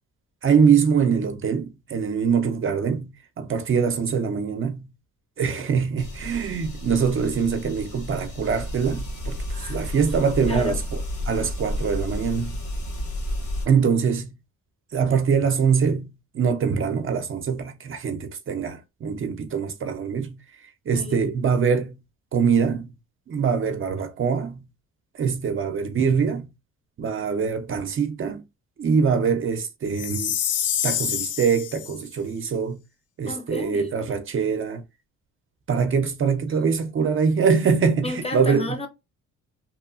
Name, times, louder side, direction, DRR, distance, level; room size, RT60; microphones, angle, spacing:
voice 1, 0.4-4.9 5.4-9.4 9.7-11.0 11.3-12.6 13.7-14.4 14.9-20.4 20.9-22.0 22.3-22.9 23.3-24.7 25.2-26.5 27.0-28.4 28.8-30.3 30.8-32.8 33.2-34.8 35.7-38.8, right 6 dB, 45° right, 0.5 m, -23 dB
sound 1, 6.0-13.7, left 1 dB, 75° left, 1.3 m, -31 dB
voice 2, 20.9-21.3 33.3-33.9 38.0-38.9, left 2 dB, 20° left, 0.7 m, -32 dB
Chime, 30.0-32.0, left 9 dB, 55° left, 0.5 m, -27 dB
3.0 x 2.3 x 2.4 m
cardioid pair, 90°, 30 cm